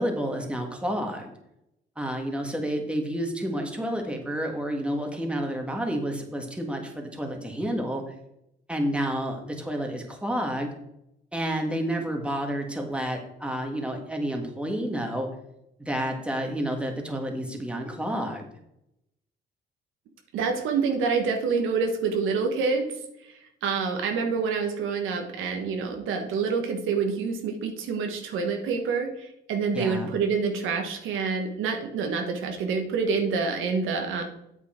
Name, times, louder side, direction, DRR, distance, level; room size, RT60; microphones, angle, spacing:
voice 1, 0.0-1.3 2.0-8.0 8.7-10.7 11.3-15.3 15.8-18.4 29.7-30.1, equal, 5° right, 2 dB, 1.7 m, -30 dB
voice 2, 20.3-22.9 23.2-34.2, right 5 dB, 85° right, 4 dB, 1.3 m, -27 dB
8.3 x 7.0 x 4.4 m, 0.83 s
cardioid pair, 90°, 20 cm